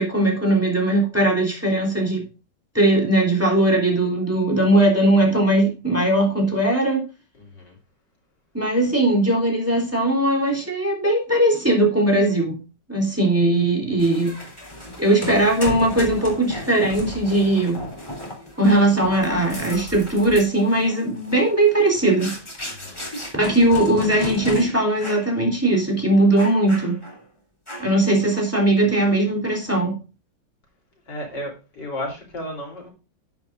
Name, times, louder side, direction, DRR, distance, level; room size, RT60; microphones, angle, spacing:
voice 1, 0.0-2.2 2.7-7.0 8.5-12.6 12.9-14.4 15.0-17.8 18.6-22.3 23.3-27.0 27.8-30.0, right 1 dB, 5° right, 3.3 m, -19 dB
voice 2, 7.4-7.8 22.6-23.0 31.1-32.9, equal, 55° left, 4.2 m, -33 dB
sound 1, 14.0-24.6 25.0-25.3 25.7-25.8 26.4-27.2 27.7-28.1, left 1 dB, 15° left, 3.7 m, -35 dB
10.5 x 10.5 x 2.6 m
omnidirectional pair, 2.3 m